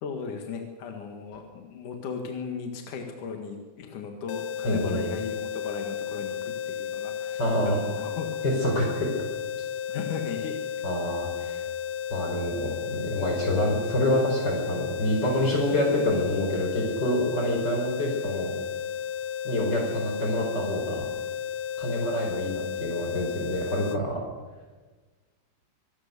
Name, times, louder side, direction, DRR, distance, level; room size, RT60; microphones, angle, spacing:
voice 1, 0.0-8.3 9.9-10.6 15.3-15.5 21.9-22.1, left 6 dB, 60° left, 4 dB, 3.1 m, -36 dB
sound 1, 4.3-24.0, left 9 dB, 80° left, 2.7 m, -33 dB
voice 2, 4.6-5.0 7.4-7.8 8.4-9.2 10.8-11.6 12.1-18.5 19.4-21.0 21.8-24.2, left 1 dB, 25° left, 0 dB, 4.9 m, -27 dB
25.5 x 18.5 x 6.8 m, 1.3 s
omnidirectional pair, 4.3 m